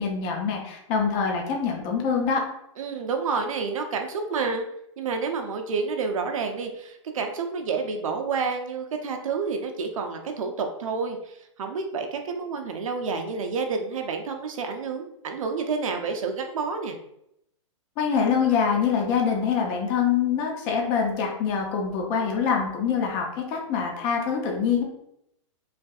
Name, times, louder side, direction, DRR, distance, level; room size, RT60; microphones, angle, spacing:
voice 1, 0.0-2.4 18.0-24.8, left 6 dB, 20° left, 1 dB, 0.5 m, -25 dB
voice 2, 2.8-4.6 5.0-17.0, right 4 dB, 80° right, 4 dB, 0.6 m, -29 dB
3.2 x 2.6 x 2.3 m, 0.78 s
hypercardioid pair, 160°, 17 cm